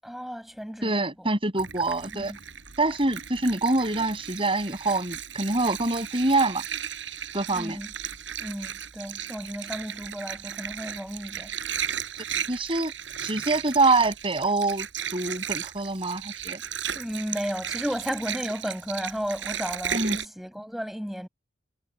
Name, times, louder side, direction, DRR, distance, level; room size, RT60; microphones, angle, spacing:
voice 1, 0.0-1.3 2.1-2.4 7.5-7.9 8.4-11.5 16.9-21.3, equal, ahead, 7.3 m, -34 dB
voice 2, 0.8-2.3 2.8-6.6 7.3-7.8 12.5-12.9 13.2-14.9 15.1-16.6 19.9-20.2, right 2 dB, 30° right, 6.9 m, -25 dB
Water, 1.6-20.3, right 9 dB, 85° right, 4.6 m, -35 dB
head